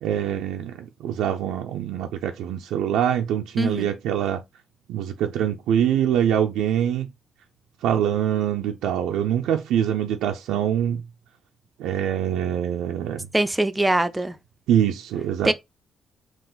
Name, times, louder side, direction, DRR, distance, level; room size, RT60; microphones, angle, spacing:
voice 1, 0.0-4.4 4.9-7.1 7.8-11.0 11.8-13.3 14.7-15.5, right 9 dB, 90° right, 0.4 m, -24 dB
voice 2, 3.6-3.9 13.3-14.4 15.4-15.5, right 1 dB, 10° right, 0.5 m, -22 dB
3.9 x 2.5 x 3.8 m
cardioid pair, 90°, 0 cm